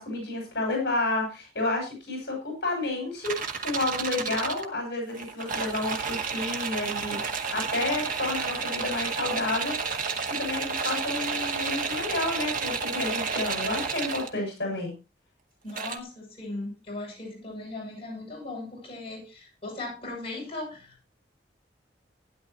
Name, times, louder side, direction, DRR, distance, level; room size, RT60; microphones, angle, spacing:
voice 1, 0.0-9.8 10.4-14.9, left 2 dB, 60° left, 2 dB, 6.6 m, -30 dB
sound 1, 3.2-4.6 5.1-14.3 15.7-16.0, right 5 dB, 50° right, 1.8 m, -31 dB
voice 2, 15.6-21.1, left 2 dB, 30° left, -2 dB, 7.5 m, -38 dB
16.5 x 10.5 x 3.0 m, 0.29 s
head